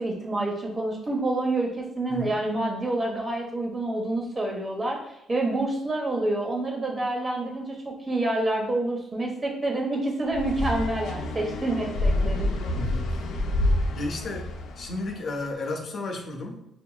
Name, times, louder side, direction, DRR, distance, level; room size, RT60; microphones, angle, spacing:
voice 1, 0.0-5.0 5.3-12.5, right 2 dB, 30° right, 0 dB, 1.1 m, -28 dB
sound 1, 10.3-15.2, left 1 dB, 85° left, 0.6 m, -28 dB
voice 2, 12.7-13.2 13.9-14.5 14.8-16.6, left 2 dB, 55° left, 2 dB, 0.7 m, -33 dB
4.9 x 2.8 x 2.3 m, 0.81 s
cardioid pair, 90°, 0 cm